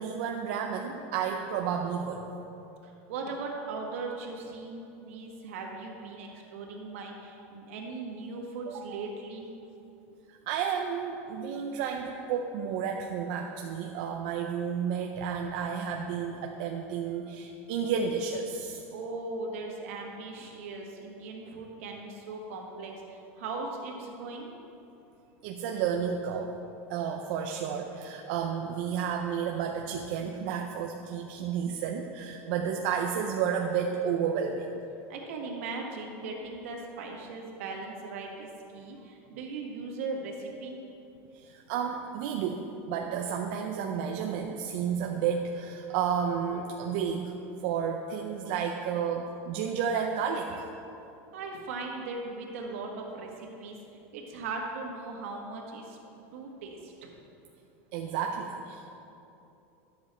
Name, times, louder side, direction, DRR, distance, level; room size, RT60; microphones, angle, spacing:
voice 1, 0.0-2.3 8.7-9.0 10.3-18.8 25.4-26.5 26.9-34.7 41.3-47.4 47.6-50.7 57.9-58.9, right 7 dB, 50° right, 2 dB, 0.5 m, -31 dB
voice 2, 2.8-9.5 18.9-24.5 35.1-38.5 38.7-40.8 51.3-53.7 54.1-56.0 56.3-57.1, right 3 dB, 70° right, 0 dB, 1.6 m, -39 dB
11.0 x 7.2 x 4.3 m, 2.8 s
supercardioid pair, 180°, 7 cm